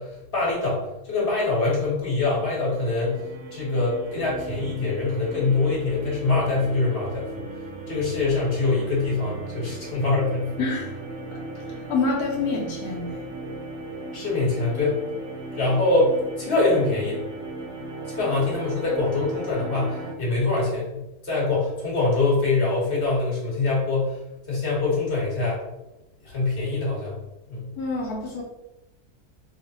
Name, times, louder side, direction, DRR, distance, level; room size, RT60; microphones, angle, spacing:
voice 1, 0.0-3.2 3.5-7.5 7.9-10.7 14.1-15.0 15.5-17.2 18.1-24.2 24.5-25.6 26.2-27.2 27.5-27.7, left 3 dB, 35° left, -5 dB, 1.4 m, -24 dB
sound 1, 2.3-20.1, right 2 dB, 65° right, 0.8 m, -37 dB
voice 2, 10.6-11.0 11.3-13.3 27.8-28.4, left 4 dB, 80° left, -2 dB, 1.1 m, -28 dB
3.0 x 2.1 x 4.0 m, 0.94 s
omnidirectional pair, 1.6 m